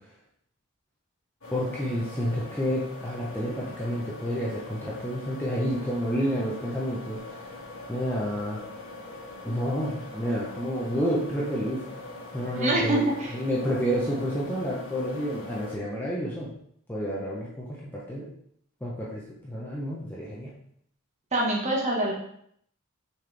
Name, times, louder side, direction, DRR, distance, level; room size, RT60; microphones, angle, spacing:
sound 1, 1.4-15.8, left 2 dB, 80° left, 1.8 m, -42 dB
voice 1, 1.5-7.4 7.9-8.6 9.4-11.8 12.3-16.5 16.9-18.3 18.8-20.5, equal, 10° left, -6 dB, 0.9 m, -30 dB
voice 2, 12.5-13.3 21.3-22.1, right 1 dB, 35° right, -2 dB, 1.4 m, -25 dB
6.4 x 4.4 x 3.4 m, 0.68 s
head